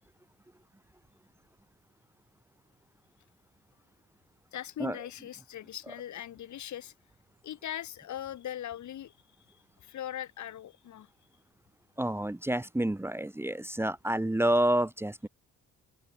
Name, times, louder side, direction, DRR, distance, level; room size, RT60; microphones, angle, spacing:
voice 1, 4.5-6.9 7.4-9.1 9.5-11.1, left 11 dB, 70° left, 4.8 m, -40 dB
voice 2, 12.0-15.3, right 1 dB, 10° right, 1.4 m, -29 dB
open air
cardioid pair, 90°, 30 cm